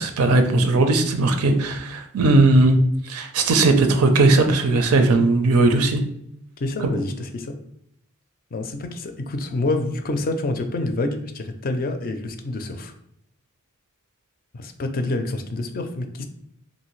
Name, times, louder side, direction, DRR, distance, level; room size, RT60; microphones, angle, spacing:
voice 1, 0.0-2.8 3.0-6.0, right 2 dB, 90° right, 6 dB, 0.5 m, -18 dB
voice 2, 6.6-7.5 8.5-12.9 14.5-16.2, left 2 dB, 40° left, 7 dB, 0.4 m, -27 dB
3.1 x 2.6 x 3.0 m, 0.74 s
head